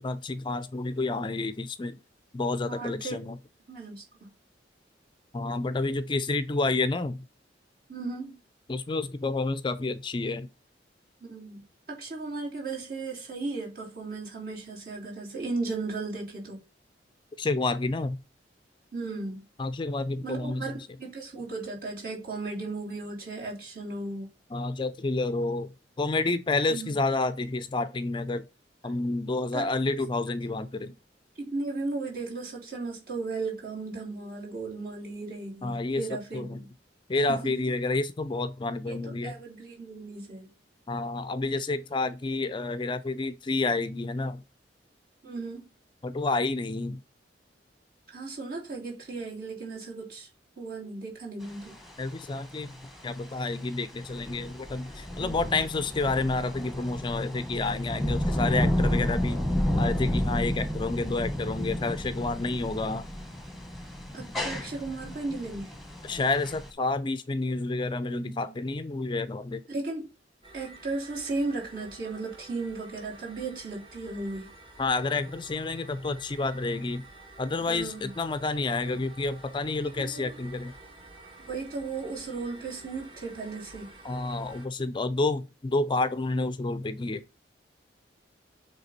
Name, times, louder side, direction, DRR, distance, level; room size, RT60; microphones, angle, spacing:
voice 1, 0.0-2.0 2.3-3.4 5.3-7.2 8.7-10.5 17.4-18.2 19.6-20.6 24.5-28.4 28.8-30.9 35.6-36.0 36.3-36.6 37.1-39.3 40.9-44.4 46.0-47.0 52.0-52.7 53.0-59.4 59.8-63.1 66.1-69.6 74.8-77.0 77.4-80.7 84.0-87.2, left 3 dB, 25° left, 0.4 m, -29 dB
voice 2, 2.7-3.3 3.7-4.3 7.9-8.3 11.2-16.6 18.9-19.4 20.2-24.3 26.7-26.9 29.5-29.7 31.3-36.7 37.3-37.5 38.9-40.5 45.2-45.7 48.1-50.3 50.6-51.7 55.2-55.3 64.1-65.7 68.1-68.5 69.7-70.1 70.5-74.5 77.6-78.1 80.0-80.3 81.5-83.9, right 3 dB, 50° right, 3.4 m, -36 dB
sound 1, 51.4-66.7, left 1 dB, ahead, 1.2 m, -31 dB
sound 2, 70.4-84.7, right 2 dB, 30° right, 1.5 m, -50 dB
7.9 x 3.3 x 4.2 m
head